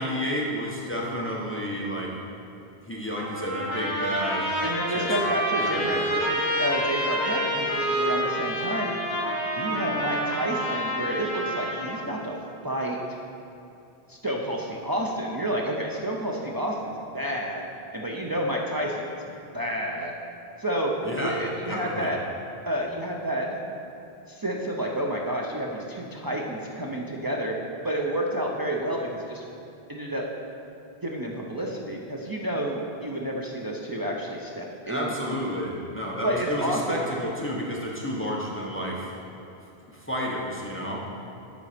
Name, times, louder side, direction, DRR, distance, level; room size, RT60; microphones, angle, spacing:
voice 1, 0.0-2.1 2.8-4.5 4.9-5.1 5.6-6.1 21.0-21.4 21.7-22.1 34.9-39.1 39.9-41.0, equal, 15° left, -3 dB, 0.7 m, -31 dB
Trumpet, 3.2-12.1, equal, 45° left, 1.8 m, -28 dB
voice 2, 4.6-8.9 9.5-12.3 12.6-13.0 14.1-17.6 17.9-20.1 20.6-20.9 21.2-22.2 22.7-23.6 24.3-27.6 27.8-29.4 29.9-30.2 31.0-35.3 36.2-37.0, right 1 dB, 40° right, -2 dB, 0.3 m, -30 dB
8.2 x 4.0 x 5.0 m, 2.9 s
omnidirectional pair, 1.1 m